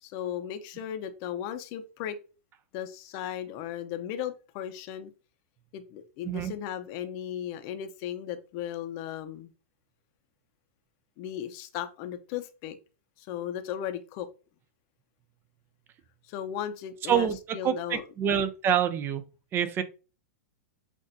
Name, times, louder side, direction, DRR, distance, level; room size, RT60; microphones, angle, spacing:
voice 1, 0.0-2.2 2.7-5.1 5.7-9.5 11.2-12.8 13.2-14.3 16.2-18.4, left 10 dB, 45° left, 9 dB, 0.7 m, -36 dB
voice 2, 17.6-19.2 19.5-19.8, right 8 dB, 25° right, 12 dB, 0.5 m, -26 dB
6.0 x 2.5 x 2.6 m, 0.33 s
hypercardioid pair, 125°, 8 cm